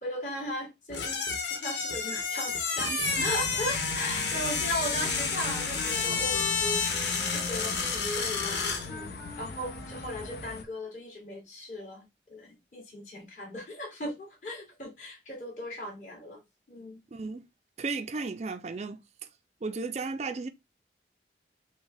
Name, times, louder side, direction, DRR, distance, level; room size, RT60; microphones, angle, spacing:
voice 1, 0.0-1.2 1.5-2.9 3.2-6.5 7.3-16.4 16.7-17.0 19.7-19.8, left 1 dB, 45° left, 2.2 m, -37 dB
sound 1, 0.9-8.9, left 5 dB, 85° left, 1.1 m, -30 dB
voice 2, 2.8-3.3 17.1-17.4 17.8-19.0 19.6-20.5, right 4 dB, 40° right, 0.4 m, -34 dB
sound 2, 3.0-10.6, left 3 dB, 70° left, 0.7 m, -40 dB
Wind instrument woodwind instrument, 4.9-10.6, left 2 dB, 20° left, 1.8 m, -42 dB
6.0 x 2.2 x 3.8 m
head